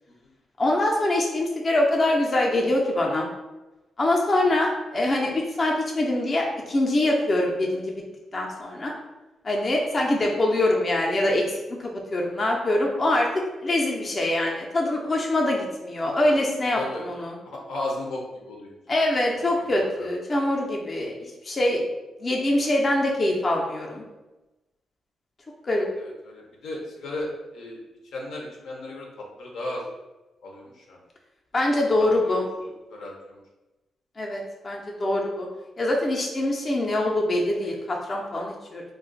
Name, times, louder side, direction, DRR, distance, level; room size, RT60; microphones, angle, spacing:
voice 1, 0.6-3.3 4.0-7.9 8.3-8.9 9.4-13.3 13.6-17.4 18.9-21.9 22.2-24.0 25.6-25.9 31.5-32.5 34.2-35.5 35.8-38.8, left 1 dB, 35° left, -1 dB, 0.5 m, -24 dB
voice 2, 16.7-17.0 17.4-18.7 19.3-20.1 25.7-27.8 28.1-29.9 30.4-31.0 32.2-32.5 32.9-33.4, left 2 dB, 80° left, -1 dB, 0.7 m, -35 dB
2.4 x 2.2 x 3.8 m, 1.1 s
cardioid pair, 100°, 0 cm